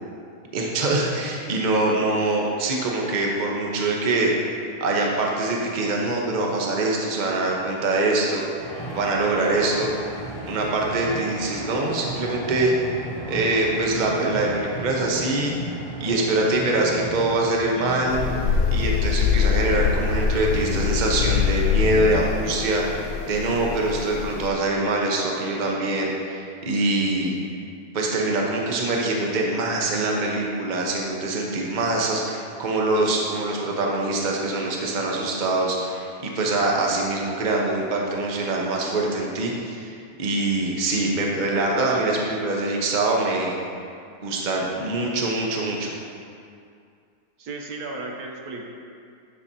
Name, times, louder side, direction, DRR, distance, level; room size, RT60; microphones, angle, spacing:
voice 1, 0.5-8.4 8.9-9.9 10.5-12.7 13.3-15.5 16.0-18.2 18.7-27.3 27.9-36.1 36.3-43.5 44.2-45.9, right 2 dB, 35° right, -1 dB, 0.8 m, -24 dB
sound 1, 8.5-18.4, right 1 dB, 35° left, 2.3 m, -34 dB
sound 2, 18.1-24.5, left 6 dB, 75° left, 1.2 m, -24 dB
voice 2, 47.4-48.7, right 3 dB, 70° right, 1 dB, 1.2 m, -34 dB
10.5 x 6.9 x 2.7 m, 2.3 s
omnidirectional pair, 1.7 m